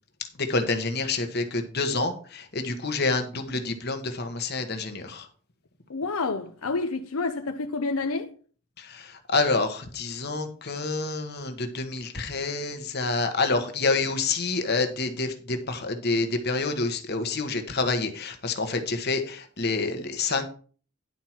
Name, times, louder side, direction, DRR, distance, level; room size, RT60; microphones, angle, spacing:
voice 1, 0.4-5.3 8.8-20.4, left 3 dB, 50° left, 1.3 m, -28 dB
voice 2, 5.9-8.4, left 3 dB, 80° left, 0.7 m, -29 dB
11.0 x 4.6 x 5.8 m
head